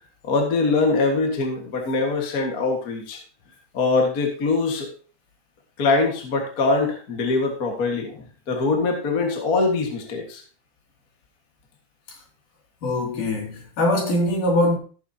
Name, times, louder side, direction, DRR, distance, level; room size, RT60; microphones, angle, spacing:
voice 1, 0.2-3.2 3.7-4.9 5.8-10.4, left 3 dB, 40° left, 1.4 m, -23 dB
voice 2, 12.8-14.8, left 1 dB, 70° left, 4.1 m, -22 dB
15.5 x 7.1 x 2.8 m
omnidirectional pair, 3.7 m